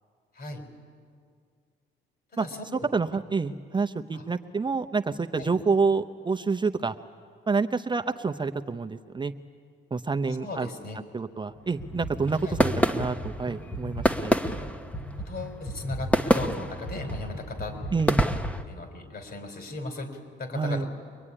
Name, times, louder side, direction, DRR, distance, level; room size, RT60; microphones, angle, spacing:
voice 1, 2.3-2.9 4.1-4.2 5.4-5.5 10.4-11.0 12.4-12.6 15.2-17.8 18.7-20.9, left 2 dB, 55° left, 6 dB, 4.7 m, -37 dB
voice 2, 2.9-7.0 7.5-9.3 9.9-10.7 11.1-14.4 17.9-18.2 20.5-20.9, right 4 dB, 25° right, 6 dB, 0.8 m, -28 dB
sound 1, 11.6-18.6, equal, 5° left, 1.2 m, -28 dB
23.5 x 21.5 x 10.0 m, 2.1 s
cardioid pair, 90°, 20 cm